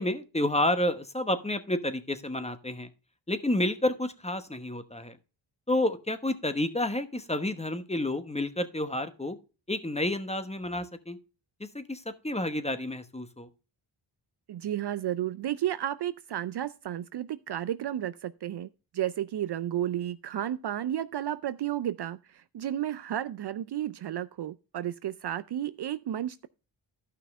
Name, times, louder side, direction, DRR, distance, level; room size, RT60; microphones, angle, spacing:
voice 1, 0.0-2.9 3.3-5.2 5.7-9.4 9.7-11.2 11.7-13.5, left 1 dB, 15° left, 1.0 m, -30 dB
voice 2, 14.5-26.5, right 11 dB, 55° right, 0.5 m, -32 dB
12.0 x 5.7 x 3.5 m
cardioid pair, 50°, 50 cm